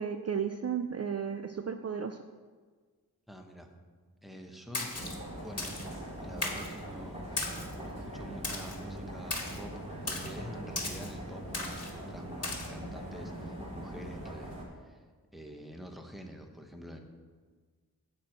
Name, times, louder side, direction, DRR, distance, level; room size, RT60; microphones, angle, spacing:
voice 1, 0.0-2.2, right 7 dB, 45° right, 7 dB, 0.4 m, -34 dB
voice 2, 3.3-3.7 4.2-4.9 5.4-5.7 6.2-7.6 7.8-9.7 10.0-14.6 14.8-15.0 15.3-17.0, equal, ahead, 3 dB, 1.0 m, -47 dB
Splash splatter, 4.7-5.2 5.6-5.9 6.4-6.7 7.4-7.7 8.4-8.8 9.3-9.6 10.1-10.3 10.8-11.1 11.5-11.9 12.4-12.7, left 2 dB, 45° left, 1.7 m, -36 dB
sound 1, 4.9-14.7, right 1 dB, 15° right, 2.5 m, -42 dB
10.0 x 4.5 x 7.9 m, 1.5 s
wide cardioid pair, 100°, 36 cm